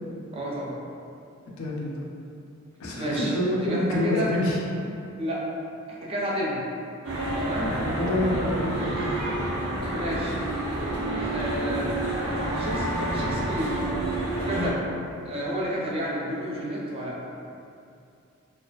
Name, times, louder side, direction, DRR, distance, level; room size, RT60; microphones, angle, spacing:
voice 1, 0.3-0.8 3.0-3.3 3.6-4.3 5.2-5.4 5.9-6.6 7.4-7.7 9.9-10.4 11.3-12.0 12.5-13.8 14.5-14.8 15.2-17.2, equal, 25° right, -5 dB, 0.4 m, -30 dB
voice 2, 1.6-2.0 2.8-4.6 7.7-9.1 14.5-14.7, left 1 dB, 75° left, -2 dB, 0.4 m, -27 dB
sound 1, 7.0-14.7, right 1 dB, 85° right, 0.6 m, -29 dB
2.3 x 2.3 x 2.3 m, 2.5 s
head